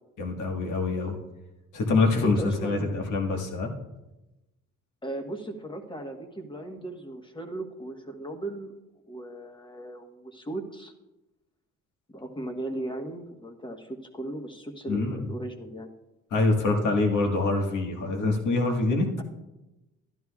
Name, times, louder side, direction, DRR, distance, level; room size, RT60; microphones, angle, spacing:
voice 1, 0.2-1.2 1.7-3.7 14.9-15.3 16.3-19.1, left 3 dB, 80° left, 2 dB, 1.6 m, -25 dB
voice 2, 2.2-3.1 5.0-8.7 9.1-10.9 12.1-15.9, right 1 dB, 15° left, 3 dB, 1.2 m, -37 dB
12.0 x 11.5 x 2.4 m, 1.0 s
cardioid pair, 90°, 30 cm